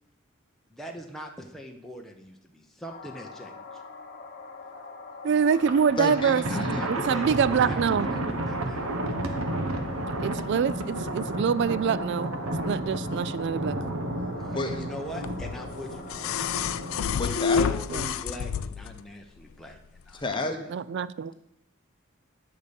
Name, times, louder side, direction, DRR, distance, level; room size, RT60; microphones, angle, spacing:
voice 1, 0.7-3.8 6.5-8.9 14.4-16.5 17.2-20.2, equal, ahead, 1 dB, 0.8 m, -41 dB
sound 1, 2.9-17.6, left 3 dB, 45° left, 1.0 m, -43 dB
voice 2, 5.2-6.4 6.9-8.1 10.2-12.3 12.6-13.8 17.9-18.1 20.7-21.3, right 6 dB, 55° right, 17 dB, 0.3 m, -25 dB
Thunder, 5.5-17.3, right 1 dB, 80° right, 1.1 m, -32 dB
voice 3, 6.0-6.8 14.5-14.8 17.1-17.7 20.1-20.6, left 2 dB, 25° left, 5 dB, 1.1 m, -30 dB
sound 2, 15.2-19.0 20.3-20.4, left 6 dB, 70° left, 0.4 m, -29 dB
10.5 x 6.6 x 5.3 m, 0.82 s
head